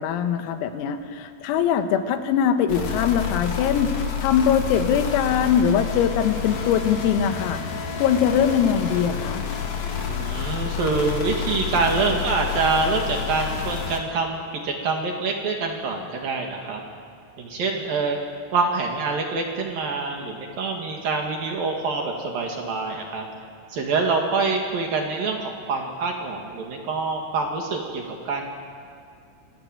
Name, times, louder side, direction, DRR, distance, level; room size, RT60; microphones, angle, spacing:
voice 1, 0.0-7.6 8.0-9.4, left 8 dB, 85° left, 7 dB, 4.1 m, -22 dB
sound 1, 2.7-14.0, left 7 dB, 45° left, 2.5 m, -29 dB
voice 2, 10.0-16.8 17.4-18.2 18.5-23.3 23.7-28.4, right 4 dB, 55° right, 2 dB, 3.1 m, -26 dB
26.5 x 19.5 x 9.0 m, 2.4 s
omnidirectional pair, 6.0 m